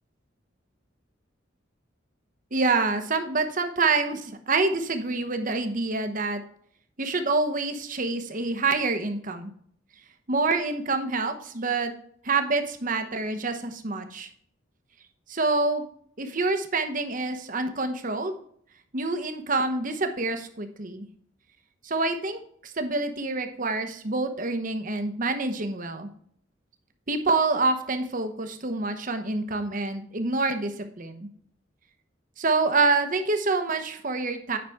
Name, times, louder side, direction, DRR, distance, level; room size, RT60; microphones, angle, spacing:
voice 1, 2.5-6.4 7.0-9.5 10.3-11.9 12.2-14.3 15.3-15.8 16.2-18.4 18.9-21.1 21.8-26.1 27.1-31.3 32.4-34.6, right 3 dB, 45° right, 7 dB, 1.0 m, -27 dB
9.6 x 5.9 x 3.6 m, 0.62 s
head